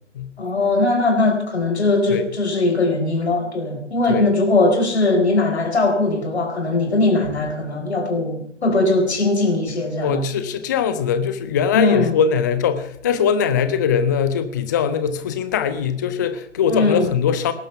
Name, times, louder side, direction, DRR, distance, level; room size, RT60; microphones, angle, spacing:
voice 1, 0.4-10.2 11.7-12.1 16.7-17.1, left 2 dB, 60° left, 3 dB, 4.4 m, -20 dB
voice 2, 10.0-17.5, left 7 dB, 15° left, 11 dB, 0.5 m, -21 dB
19.5 x 11.5 x 5.7 m, 0.69 s
figure-of-eight pair, 130°, 37 cm